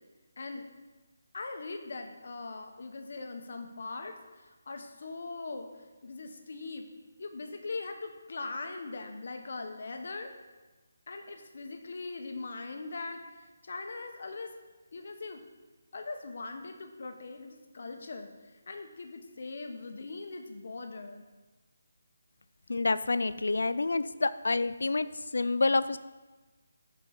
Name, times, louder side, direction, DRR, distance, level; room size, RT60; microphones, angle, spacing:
voice 1, 0.4-0.7 1.3-5.7 6.0-6.9 7.2-10.3 11.1-13.2 13.6-14.5 14.9-15.4 15.9-18.3 18.7-21.2, left 3 dB, 50° left, 5 dB, 0.9 m, -40 dB
voice 2, 22.7-26.0, left 3 dB, 80° left, 14 dB, 0.4 m, -28 dB
5.5 x 5.3 x 6.3 m, 1.2 s
hypercardioid pair, 175°, 0 cm